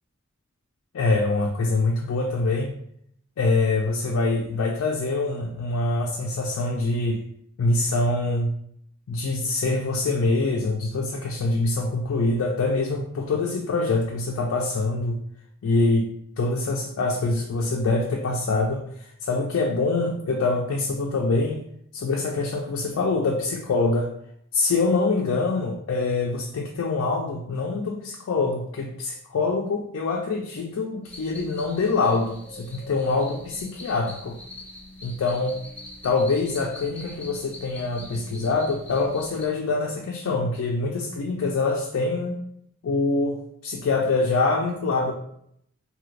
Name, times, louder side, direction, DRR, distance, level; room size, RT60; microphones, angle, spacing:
voice 1, 0.9-2.7 3.4-7.2 7.6-8.5 9.1-15.2 15.6-16.1 16.4-21.6 22.0-24.1 24.5-34.4 35.0-35.6 36.0-42.4 42.8-45.1, left 3 dB, 80° left, 0 dB, 0.4 m, -24 dB
sound 1, 31.0-39.4, left 1 dB, 5° left, 0.4 m, -43 dB
2.7 x 2.4 x 3.2 m, 0.70 s
head